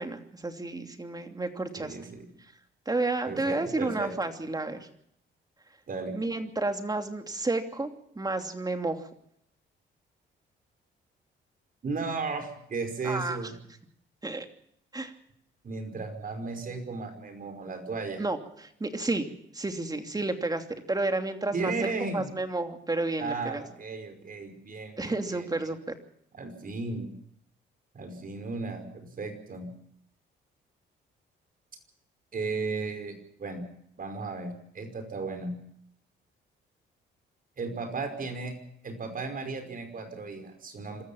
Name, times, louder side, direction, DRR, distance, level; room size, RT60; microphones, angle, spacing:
voice 1, 0.0-2.0 2.9-4.9 6.1-7.9 8.2-9.1 13.0-13.4 14.2-14.4 14.9-15.1 18.2-19.3 19.5-21.9 22.1-23.6 25.0-25.9, right 2 dB, 20° right, 6 dB, 2.9 m, -31 dB
voice 2, 1.8-2.3 3.3-4.1 5.9-6.2 11.8-13.5 15.6-18.2 21.5-22.3 23.2-25.7 26.3-27.1 27.9-29.7 32.3-33.6 34.0-35.6 37.6-38.6 38.8-41.0, right 3 dB, 45° right, 7 dB, 5.3 m, -35 dB
26.5 x 14.0 x 7.2 m, 0.69 s
cardioid pair, 90°, 20 cm